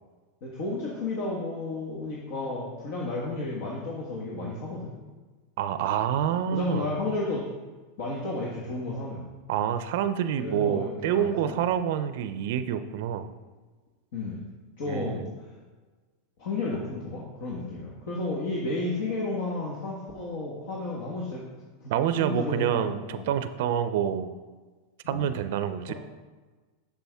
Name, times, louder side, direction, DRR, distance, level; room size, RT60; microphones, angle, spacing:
voice 1, 0.4-4.9 6.5-7.5 8.0-9.2 10.3-11.6 14.1-14.4 14.8-15.3 16.4-21.5 21.8-21.9 22.2-23.3 25.1-25.3 25.9-26.0, left 2 dB, 65° left, -3 dB, 1.4 m, -32 dB
voice 2, 5.6-6.9 9.5-13.3 14.9-15.3 21.9-24.3 25.1-25.9, right 9 dB, 65° right, 11 dB, 0.4 m, -27 dB
7.0 x 6.9 x 3.5 m, 1.3 s
hypercardioid pair, 115°, 0 cm